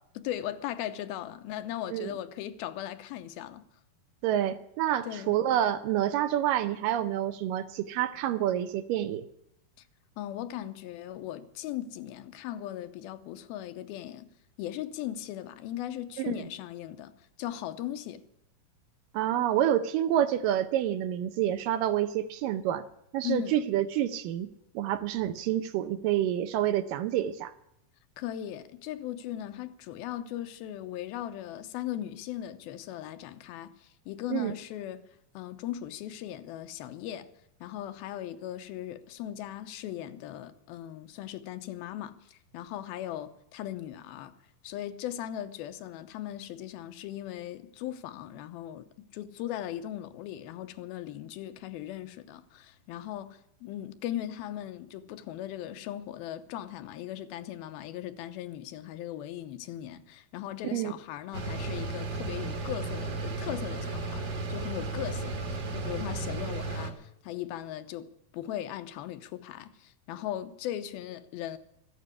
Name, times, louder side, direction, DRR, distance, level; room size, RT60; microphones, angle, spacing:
voice 1, 0.2-3.7 5.1-5.4 10.2-14.3 14.6-17.1 17.4-18.2 23.2-23.5 28.2-35.0 35.3-37.3 37.6-44.4 44.6-68.1 68.3-71.6, left 12 dB, 90° left, 2.7 m, -38 dB
voice 2, 4.2-9.3 16.2-16.3 19.1-22.9 23.1-24.5 24.7-27.5 34.3-34.5 60.7-60.9, right 11 dB, 75° right, 2.2 m, -28 dB
sound 1, 61.3-66.9, right 3 dB, 45° right, 1.4 m, -34 dB
14.0 x 9.3 x 9.6 m
omnidirectional pair, 4.3 m